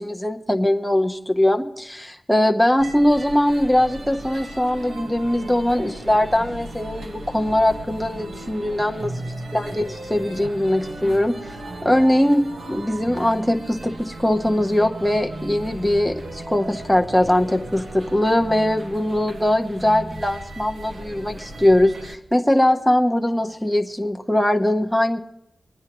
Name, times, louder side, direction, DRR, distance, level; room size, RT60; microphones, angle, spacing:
voice 1, 0.0-9.1 9.5-11.4 11.8-25.2, left 1 dB, ahead, 3 dB, 0.8 m, -21 dB
sound 1, 2.8-22.2, right 1 dB, 85° right, 1.4 m, -36 dB
24.5 x 10.0 x 3.0 m, 0.80 s
wide cardioid pair, 130°, 0 cm